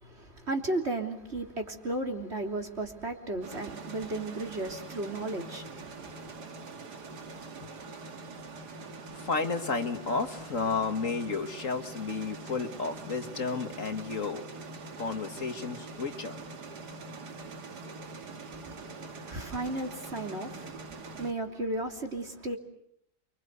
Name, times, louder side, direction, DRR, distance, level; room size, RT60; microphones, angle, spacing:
voice 1, 0.0-6.3 18.5-22.6, right 2 dB, 40° right, 3.5 m, -35 dB
sound 1, 3.4-21.3, right 3 dB, 75° right, 2.5 m, -44 dB
voice 2, 9.1-14.4 15.0-16.4, left 4 dB, 50° left, 1.9 m, -32 dB
29.0 x 25.0 x 8.1 m
omnidirectional pair, 1.8 m